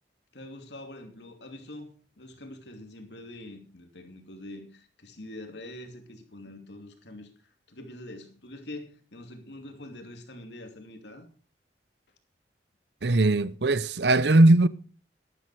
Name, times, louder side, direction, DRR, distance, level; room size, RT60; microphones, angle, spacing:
voice 1, 0.3-7.3 7.7-11.3, left 1 dB, 80° left, 2.7 m, -44 dB
voice 2, 13.0-14.7, right 2 dB, 75° right, 0.8 m, -19 dB
12.5 x 12.0 x 4.9 m
head